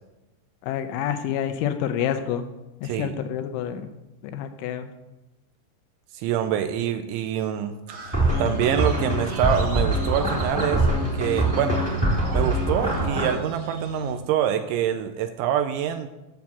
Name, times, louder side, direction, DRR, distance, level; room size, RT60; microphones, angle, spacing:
voice 1, 0.6-2.5 2.8-3.9 4.2-4.9, left 9 dB, 80° left, 8 dB, 2.9 m, -28 dB
voice 2, 2.8-3.2 6.1-7.7 8.4-10.8 11.2-11.8 12.3-16.1, right 10 dB, 85° right, 8 dB, 2.8 m, -25 dB
Crow, 7.9-14.1, right 3 dB, 45° right, 1.8 m, -39 dB
sound 1, 8.1-13.3, right 1 dB, 5° right, 1.6 m, -23 dB
9.4 x 7.4 x 7.1 m, 1.0 s
omnidirectional pair, 5.8 m